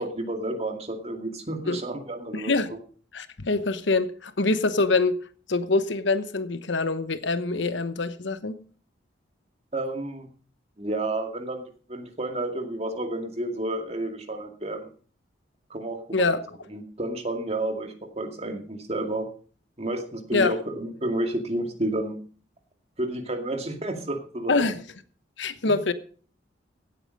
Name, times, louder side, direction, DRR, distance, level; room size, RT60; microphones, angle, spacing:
voice 1, 0.0-2.8 9.7-10.3 10.8-11.6 11.9-14.9 15.7-16.4 16.7-19.3 19.8-22.2 23.0-24.7 25.7-25.8, right 1 dB, 35° right, 2.2 m, -31 dB
voice 2, 2.3-2.7 3.1-5.2 5.5-8.5 16.1-16.4 20.3-20.5 24.5-24.8 25.4-25.9, left 3 dB, 70° left, 1.0 m, -24 dB
16.5 x 8.9 x 5.3 m
head